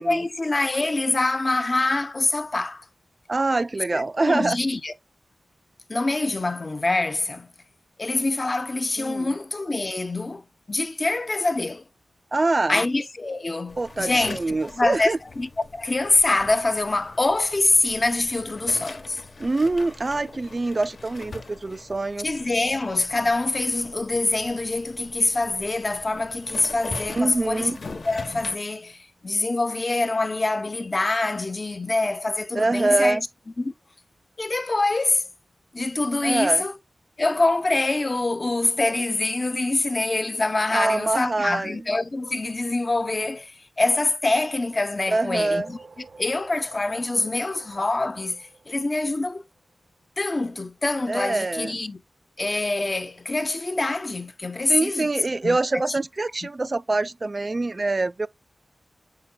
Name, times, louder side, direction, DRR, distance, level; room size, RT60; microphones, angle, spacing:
voice 1, 0.0-2.9 3.9-4.9 5.9-7.5 8.0-11.8 12.7-19.2 22.2-27.7 28.0-33.3 33.6-33.7 34.4-35.3 35.7-36.8 37.2-45.8 46.2-49.4 50.2-52.0 52.4-55.1 55.4-55.8, left 2 dB, 35° left, 0.8 m, -25 dB
voice 2, 3.3-4.6 9.0-9.3 12.3-12.8 13.8-15.2 19.4-22.3 27.1-27.8 32.5-33.2 36.2-36.6 40.7-41.8 45.1-45.7 51.1-51.7 54.7-58.3, right 2 dB, 40° right, 0.3 m, -24 dB
sound 1, 13.7-28.6, left 3 dB, 65° left, 1.1 m, -42 dB
sound 2, 45.2-49.7, right 4 dB, 65° right, 1.0 m, -50 dB
7.7 x 5.7 x 2.2 m
wide cardioid pair, 80°, 0 cm